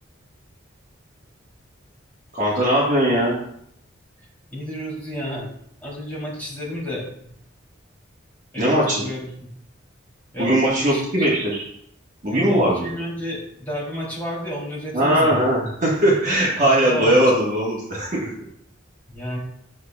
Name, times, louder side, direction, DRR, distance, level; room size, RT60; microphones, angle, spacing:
voice 1, 2.3-3.4 8.6-9.0 10.4-11.6 12.2-12.9 14.9-18.3, right 1 dB, 35° right, -5 dB, 1.5 m, -19 dB
voice 2, 4.5-5.5 5.8-7.1 8.5-9.2 10.3-10.5 10.8-11.4 12.3-15.4 16.8-17.2 19.1-19.4, equal, 10° left, -6 dB, 3.2 m, -31 dB
9.3 x 6.6 x 2.4 m, 0.71 s
head